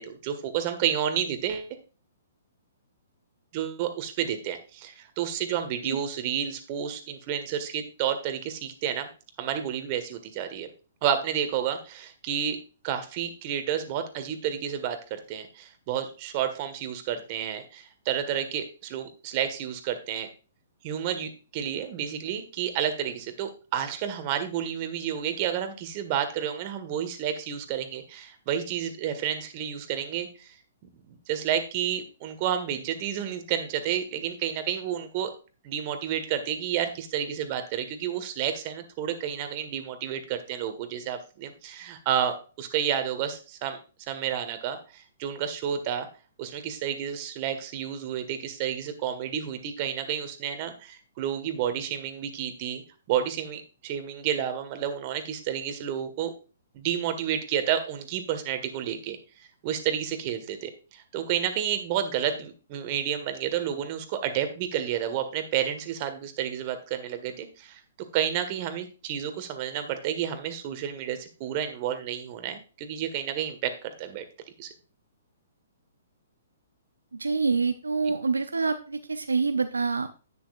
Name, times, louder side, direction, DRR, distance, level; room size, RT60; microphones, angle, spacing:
voice 1, 0.0-1.7 3.5-9.1 9.4-10.7 11.0-12.6 12.8-20.3 20.8-30.5 31.1-35.3 35.6-43.8 44.1-46.1 46.4-52.8 53.1-56.3 56.7-59.2 59.6-67.8 68.1-74.2 74.6-74.7, right 9 dB, 40° right, 8 dB, 1.7 m, -30 dB
voice 2, 77.2-80.1, right 4 dB, 80° right, 9 dB, 0.7 m, -26 dB
10.5 x 9.5 x 2.6 m, 0.34 s
figure-of-eight pair, 120°, 0 cm